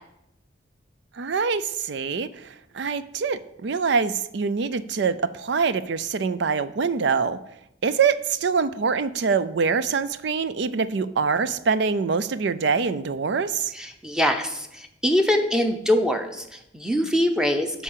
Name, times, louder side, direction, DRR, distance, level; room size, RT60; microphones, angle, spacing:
voice 1, 1.2-7.4 7.8-13.7, right 5 dB, 60° right, 14 dB, 0.4 m, -24 dB
voice 2, 13.7-17.8, left 1 dB, 5° right, 5 dB, 0.7 m, -23 dB
8.3 x 5.5 x 7.4 m, 0.84 s
head